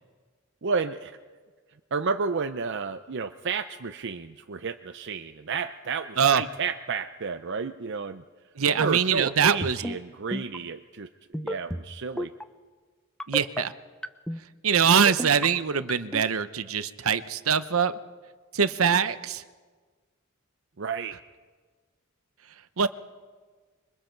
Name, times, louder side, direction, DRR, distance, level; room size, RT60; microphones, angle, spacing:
voice 1, 0.6-1.2 1.9-8.2 8.8-12.3 20.8-21.2, right 5 dB, 60° right, 8 dB, 0.6 m, -31 dB
voice 2, 8.6-9.8 13.3-13.7 14.6-17.9 18.5-19.4 22.8-22.9, right 7 dB, 85° right, 13 dB, 0.9 m, -23 dB
sound 1, 9.5-10.0 10.3-10.6 11.3-11.8 12.2-12.4 13.2-13.6 14.0-14.4 15.1-15.5 15.9-16.2, equal, 5° left, 0.6 m, -31 dB
26.0 x 23.5 x 4.6 m, 1.4 s
head